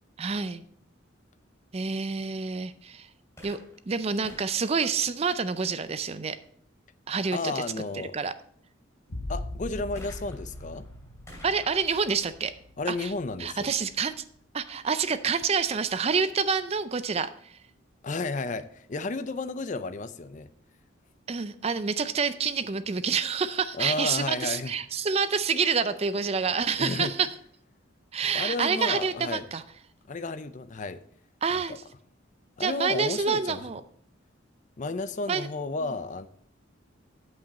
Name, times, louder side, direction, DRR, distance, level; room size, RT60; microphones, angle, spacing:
voice 1, 0.2-0.6 1.7-3.1 3.4-3.6 3.9-6.4 7.1-7.6 7.9-8.3 11.4-12.5 12.9-13.1 13.4-14.2 14.5-17.6 21.3-27.3 28.1-29.6 31.4-31.8 32.6-33.8 35.3-35.5, right 5 dB, 30° right, 0.4 m, -28 dB
sound 1, 3.4-5.9 10.0-13.6 14.4-14.5, left 1 dB, 15° left, 2.7 m, -53 dB
voice 2, 7.3-8.1 9.3-10.9 12.8-13.7 18.0-20.5 23.7-24.7 26.8-27.1 28.3-29.4 30.1-31.0 31.7-31.8 32.6-33.6 34.8-36.3, left 3 dB, 40° left, 0.5 m, -32 dB
sound 2, 9.1-14.5 15.0-15.6, left 1 dB, 85° left, 1.3 m, -41 dB
8.7 x 7.8 x 4.2 m
head